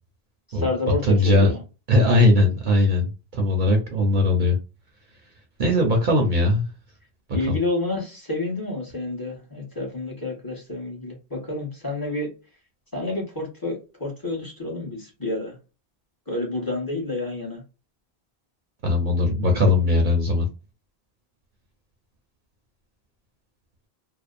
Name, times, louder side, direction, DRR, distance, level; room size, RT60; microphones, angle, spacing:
voice 1, 0.5-1.6 7.3-12.3 12.9-15.6 16.3-17.6, left 2 dB, 20° left, -1 dB, 1.0 m, -29 dB
voice 2, 1.0-1.5 1.9-4.6 5.6-6.7 7.5-7.6 18.8-20.5, left 2 dB, 55° right, 2 dB, 0.7 m, -19 dB
2.6 x 2.0 x 2.4 m, 0.31 s
omnidirectional pair, 1.1 m